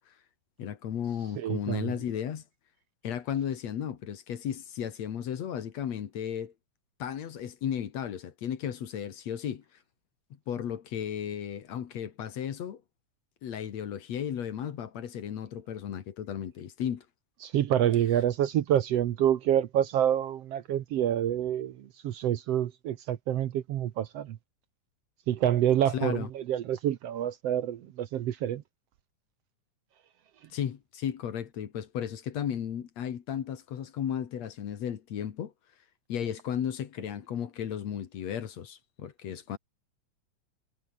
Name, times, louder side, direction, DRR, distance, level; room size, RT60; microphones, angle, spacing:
voice 1, 0.6-2.4 3.0-6.5 7.0-9.6 10.5-12.8 13.4-17.1 25.9-26.3 30.5-35.5 36.1-39.6, left 9 dB, 65° left, 2.9 m, -34 dB
voice 2, 1.4-1.9 17.4-24.4 25.3-28.6, right 11 dB, 65° right, 1.8 m, -27 dB
omnidirectional pair, 3.4 m